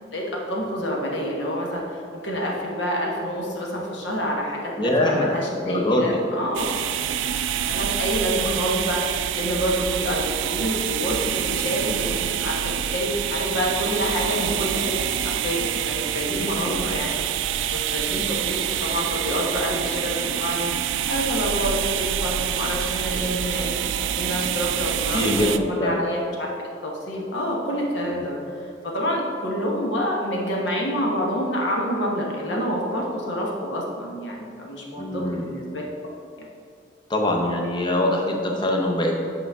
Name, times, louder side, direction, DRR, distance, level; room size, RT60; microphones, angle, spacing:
voice 1, 0.1-6.7 7.6-17.1 17.9-26.5 26.8-35.8 36.4-36.5, equal, 75° left, -2 dB, 1.2 m, -28 dB
voice 2, 4.8-6.2 16.3-16.8 25.1-26.0 28.0-28.2 35.0-35.5 37.1-39.2, left 1 dB, 25° left, 1 dB, 0.8 m, -23 dB
sound 1, 6.5-25.6, right 10 dB, 85° right, 0.3 m, -26 dB
8.2 x 5.2 x 3.6 m, 2.4 s
head